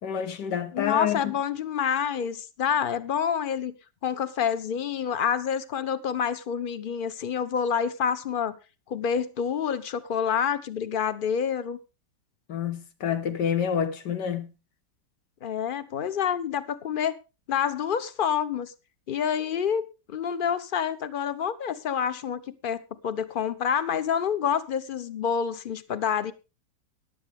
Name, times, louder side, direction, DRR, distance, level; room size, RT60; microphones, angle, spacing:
voice 1, 0.0-1.3 12.5-14.5, left 8 dB, 80° left, 1.8 m, -28 dB
voice 2, 0.7-3.8 4.0-8.5 8.9-11.8 15.4-17.2 17.5-18.7 19.1-26.3, left 7 dB, 45° left, 0.7 m, -28 dB
14.5 x 11.0 x 3.5 m
omnidirectional pair, 1.8 m